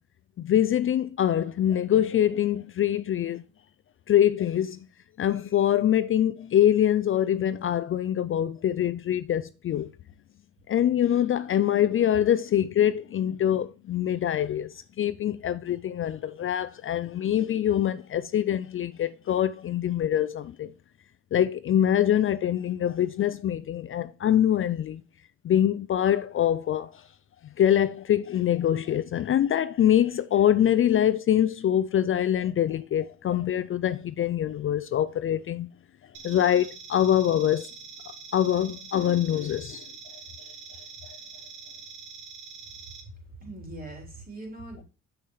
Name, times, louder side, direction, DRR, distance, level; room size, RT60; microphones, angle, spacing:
voice 1, 0.4-3.4 4.1-4.8 5.2-9.9 10.7-20.7 21.3-25.0 25.4-27.1 27.6-35.7 36.2-37.7 38.1-39.9, left 10 dB, 45° left, 0.4 m, -24 dB
sound 1, 36.1-43.0, right 5 dB, 80° right, 1.9 m, -44 dB
voice 2, 43.4-44.8, right 2 dB, 30° right, 3.6 m, -41 dB
7.2 x 6.5 x 3.2 m
cardioid pair, 90°, 30 cm